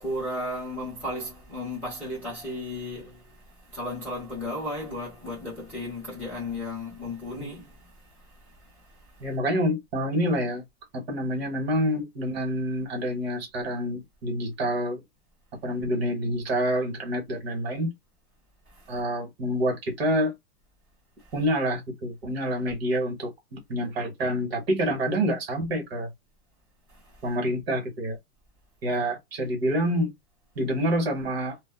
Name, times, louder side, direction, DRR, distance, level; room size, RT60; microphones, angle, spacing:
voice 1, 0.0-9.3 18.7-19.0 21.2-21.3 26.9-27.3, left 1 dB, 5° left, 0.6 m, -35 dB
voice 2, 9.2-10.6 10.9-15.0 15.6-17.9 18.9-20.3 21.3-26.1 27.2-28.2 28.8-30.1 30.5-31.6, equal, 45° right, 1.2 m, -27 dB
2.6 x 2.1 x 2.2 m
supercardioid pair, 175°, 43 cm